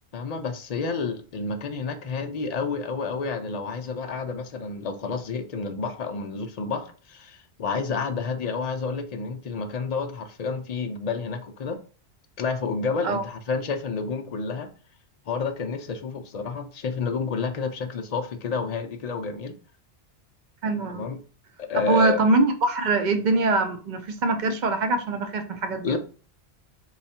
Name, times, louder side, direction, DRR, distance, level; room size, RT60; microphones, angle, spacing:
voice 1, 0.1-11.8 12.4-14.7 15.3-19.6 20.9-21.2 21.6-22.2 25.8-26.0, left 4 dB, 65° left, 0.4 m, -30 dB
voice 2, 20.6-21.1 21.9-26.0, right 3 dB, 55° right, 0.6 m, -23 dB
3.8 x 2.2 x 4.2 m
omnidirectional pair, 1.2 m